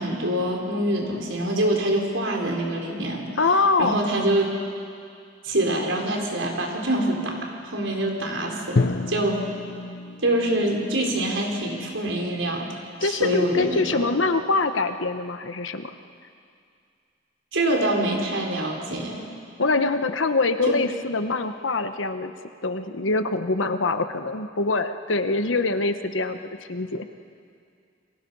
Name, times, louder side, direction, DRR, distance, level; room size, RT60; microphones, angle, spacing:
voice 1, 0.0-3.2 3.8-4.5 5.4-9.4 10.2-12.7 13.0-14.1 17.5-19.3, right 1 dB, 90° right, 0 dB, 4.1 m, -25 dB
voice 2, 3.4-4.1 13.0-15.9 19.6-22.3 22.6-26.4 26.7-27.1, left 3 dB, 85° left, 8 dB, 1.2 m, -24 dB
Drum, 8.8-12.8, left 3 dB, 60° left, 0.7 m, -30 dB
30.0 x 23.0 x 5.6 m, 2.3 s
head